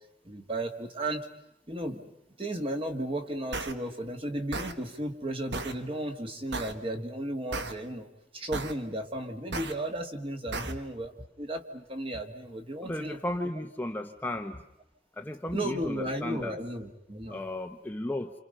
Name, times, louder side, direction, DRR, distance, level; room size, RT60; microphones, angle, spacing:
voice 1, 0.2-1.3 1.7-2.0 2.4-8.1 8.3-13.2 15.5-17.4, right 1 dB, 30° right, 5 dB, 2.1 m, -34 dB
sound 1, 3.5-3.7 4.5-4.7 5.5-5.7 6.5-6.7 7.5-7.7 8.5-8.7 9.5-9.7 10.5-10.7, right 3 dB, 70° right, 1.5 m, -34 dB
voice 2, 12.8-14.6 15.2-16.6 17.3-18.3, left 1 dB, 10° left, 4 dB, 0.9 m, -34 dB
29.0 x 28.0 x 5.5 m, 0.85 s
head